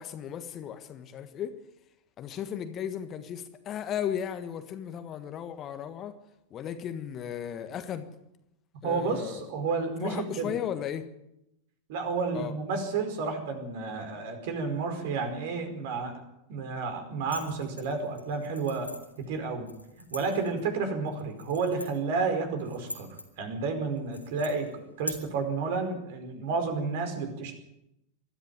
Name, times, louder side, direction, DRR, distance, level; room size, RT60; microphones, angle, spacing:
voice 1, 0.0-1.5 2.2-6.1 6.5-8.1 8.8-9.5 10.0-11.0 12.3-12.5, left 9 dB, 30° left, 1.5 m, -35 dB
voice 2, 8.8-10.6 11.9-16.2 16.5-18.9 19.3-19.7 20.1-23.1 23.4-27.6, right 4 dB, 50° right, 4.8 m, -31 dB
sound 1, 17.3-25.1, left 1 dB, 90° left, 2.5 m, -44 dB
21.0 x 13.5 x 9.1 m
figure-of-eight pair, 90°, 0 cm